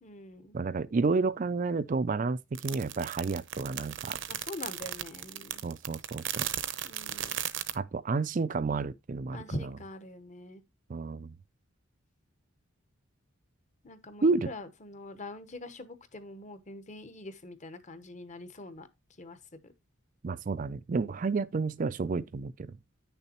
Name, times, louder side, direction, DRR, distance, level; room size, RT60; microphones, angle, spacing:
voice 1, 0.0-0.6 4.3-5.6 6.8-7.4 9.3-10.6 13.8-18.9 19.2-19.7, left 1 dB, 35° left, 1.0 m, -43 dB
voice 2, 0.5-4.2 5.6-6.5 7.7-9.4 10.9-11.3 14.2-14.5 20.2-22.7, right 4 dB, 40° right, 0.4 m, -30 dB
sound 1, 2.5-7.7, right 11 dB, 60° right, 0.8 m, -36 dB
9.4 x 6.7 x 2.9 m
head